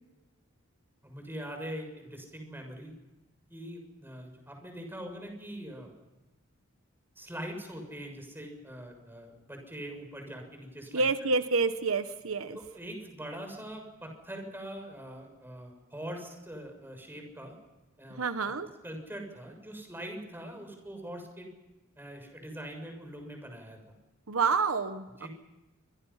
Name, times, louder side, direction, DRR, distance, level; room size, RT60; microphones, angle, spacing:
voice 1, 1.0-2.9 3.5-5.9 7.2-11.1 12.5-17.5 18.0-18.5 18.8-21.5 22.0-23.8 25.2-25.3, right 1 dB, 10° right, 4 dB, 6.8 m, -42 dB
voice 2, 10.9-12.6 18.1-18.7 24.3-25.3, right 4 dB, 75° right, 10 dB, 1.1 m, -28 dB
27.5 x 24.5 x 5.8 m, 1.1 s
head